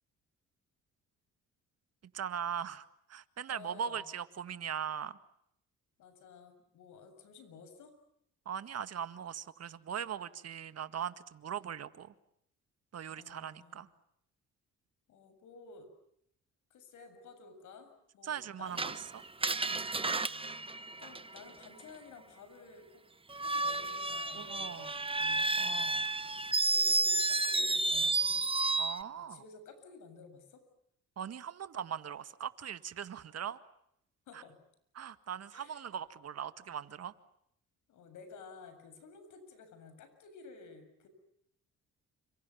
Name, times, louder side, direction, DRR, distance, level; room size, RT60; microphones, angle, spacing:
voice 1, 2.1-5.2 8.5-12.1 12.9-13.9 18.2-19.2 24.3-24.9 25.6-26.1 28.8-29.4 31.2-33.6 34.3-34.4 34.9-37.1, right 8 dB, 55° right, 12 dB, 1.9 m, -40 dB
voice 2, 3.5-4.1 6.0-7.9 13.1-13.8 15.1-15.9 16.7-19.0 20.3-20.6 21.0-23.0 23.4-25.9 26.7-28.4 29.2-30.6 34.3-34.6 35.5-35.8 37.9-41.1, left 4 dB, 80° left, 10 dB, 7.4 m, -53 dB
Screech, 18.8-21.6 23.3-29.0, right 3 dB, 20° right, 1.2 m, -31 dB
29.5 x 26.5 x 7.2 m, 0.75 s
cardioid pair, 90°, 30 cm